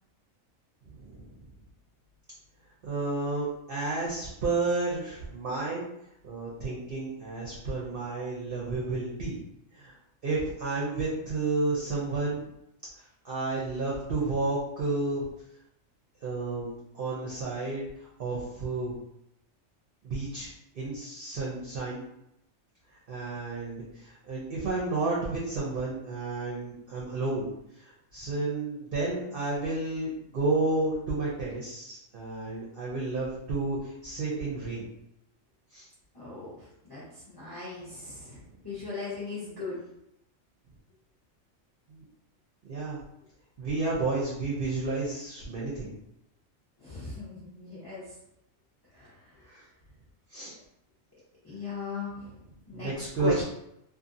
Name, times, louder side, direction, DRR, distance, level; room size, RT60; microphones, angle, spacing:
voice 1, 0.8-1.5 2.8-5.9 6.2-9.4 9.7-9.9 10.2-12.5 13.2-15.2 16.2-18.9 20.0-22.0 23.1-27.5 27.8-34.8 35.7-35.9 41.9-42.0 42.6-43.0 43.6-45.9 49.5-49.6 50.3-50.5 52.7-53.4, right 3 dB, 55° right, -4 dB, 0.7 m, -31 dB
voice 2, 36.1-38.4 38.6-39.8 46.8-48.0 48.9-49.2 51.4-52.4 52.7-52.9 53.2-53.4, left 4 dB, 20° left, -9 dB, 0.6 m, -38 dB
2.6 x 2.6 x 2.5 m, 0.80 s
omnidirectional pair, 1.4 m